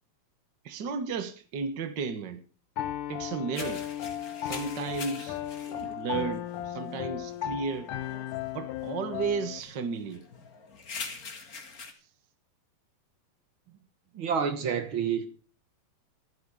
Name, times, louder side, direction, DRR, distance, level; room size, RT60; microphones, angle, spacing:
voice 1, 0.6-2.4 3.1-3.8 4.4-5.4 5.7-7.9 8.5-10.2, right 5 dB, 85° right, 0.9 m, -33 dB
Piano, 2.8-9.6, left 11 dB, 70° left, 2.3 m, -35 dB
sound 1, 3.5-11.9, left 4 dB, 35° left, 1.6 m, -45 dB
voice 2, 14.1-15.3, right 7 dB, 65° right, 1.2 m, -28 dB
14.5 x 12.5 x 4.8 m
omnidirectional pair, 4.2 m